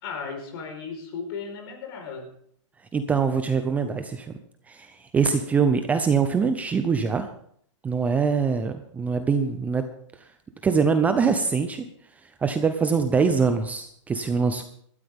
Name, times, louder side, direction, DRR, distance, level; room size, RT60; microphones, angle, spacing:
voice 1, 0.0-2.3, left 5 dB, 45° left, 5 dB, 4.4 m, -35 dB
voice 2, 2.9-4.4 4.7-7.3 7.8-9.8 10.6-11.9 12.4-14.6, right 5 dB, 10° right, 8 dB, 0.6 m, -23 dB
17.0 x 13.0 x 3.6 m, 0.64 s
hypercardioid pair, 155°, 16 cm